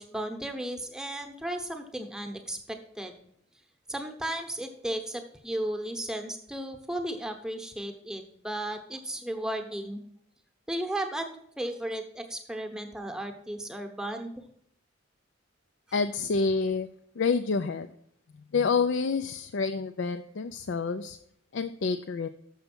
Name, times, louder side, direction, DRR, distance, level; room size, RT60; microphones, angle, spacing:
voice 1, 0.0-3.1 3.9-10.0 10.7-14.3, right 1 dB, 5° right, 5 dB, 0.9 m, -35 dB
voice 2, 15.9-16.9 17.2-17.9 18.3-21.2 21.5-22.3, left 4 dB, 65° left, 9 dB, 0.4 m, -28 dB
6.9 x 6.6 x 6.0 m, 0.69 s
head